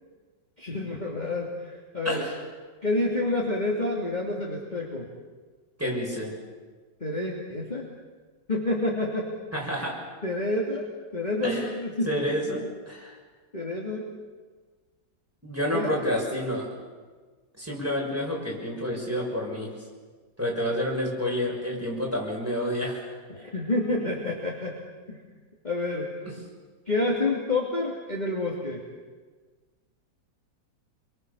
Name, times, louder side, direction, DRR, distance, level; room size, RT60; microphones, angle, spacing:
voice 1, 0.6-2.2 2.8-5.1 7.0-7.9 8.5-9.3 10.2-12.1 13.5-14.1 15.7-15.9 23.3-24.7 25.1-25.2 25.6-26.1 26.9-28.8, left 2 dB, 25° left, -3 dB, 3.0 m, -28 dB
voice 2, 2.0-2.4 5.8-6.4 9.5-10.0 11.4-11.7 12.1-13.2 15.4-16.7 17.6-19.7 20.4-23.1 26.2-26.3, equal, 5° right, -3 dB, 6.6 m, -29 dB
27.5 x 24.0 x 7.1 m, 1.4 s
omnidirectional pair, 2.0 m